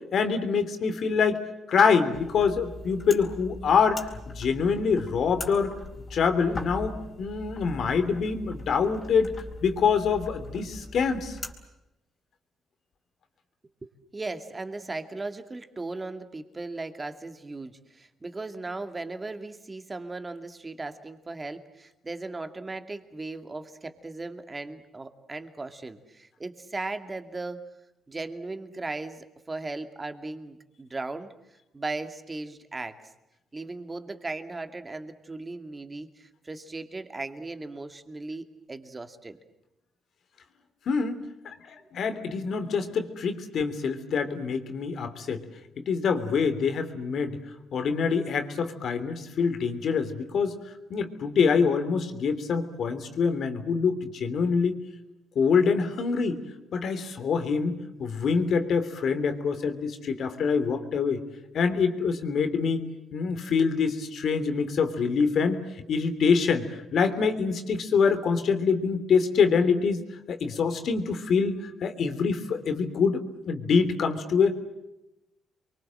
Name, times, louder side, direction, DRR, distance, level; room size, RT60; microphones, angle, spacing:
voice 1, 0.1-1.4 1.7-5.7 6.1-9.3 9.6-11.4 40.9-45.4 45.8-47.4 47.7-50.6 50.9-54.8 55.3-56.4 56.7-61.2 61.5-65.6 65.9-70.0 70.3-73.2 73.5-74.6, left 5 dB, 60° left, 9 dB, 3.1 m, -25 dB
sound 1, 2.1-11.5, left 2 dB, 35° left, 4.2 m, -41 dB
voice 2, 13.8-27.6 28.1-31.3 31.7-33.0 33.5-39.4, right 3 dB, 20° right, 8 dB, 2.4 m, -37 dB
29.0 x 23.5 x 7.7 m, 0.93 s
cardioid pair, 90°, 0 cm